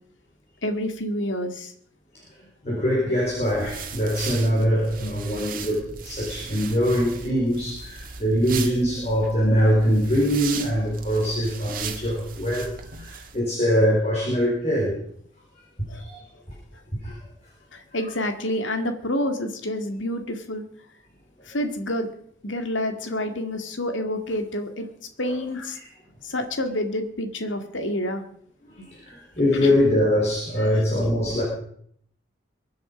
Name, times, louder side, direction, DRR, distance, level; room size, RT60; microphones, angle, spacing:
voice 1, 0.6-1.7 15.9-16.0 17.7-20.6 21.5-22.1 22.4-24.9 25.2-25.8 26.2-28.2 29.6-29.7 30.6-30.7, left 1 dB, 90° left, 7 dB, 2.2 m, -28 dB
voice 2, 2.6-15.0 15.9-16.2 17.0-17.2 25.2-25.3 25.7-25.8 28.7-31.4, equal, 35° left, -4 dB, 4.5 m, -23 dB
sound 1, 3.2-13.4, right 6 dB, 45° right, 1.8 m, -38 dB
23.5 x 9.5 x 5.2 m, 0.64 s
head